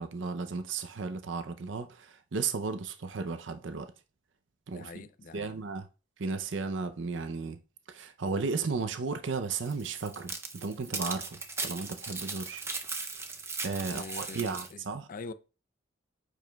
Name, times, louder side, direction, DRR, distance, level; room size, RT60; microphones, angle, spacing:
voice 1, 0.0-3.9 4.7-5.0 5.3-5.9 6.2-7.6 7.9-12.6 13.6-15.1, right 4 dB, 70° right, 0.6 m, -34 dB
voice 2, 4.7-5.5 13.8-15.3, left 4 dB, 45° left, 0.4 m, -44 dB
sound 1, 9.6-14.7, right 4 dB, 15° right, 0.5 m, -38 dB
8.9 x 5.0 x 2.3 m
head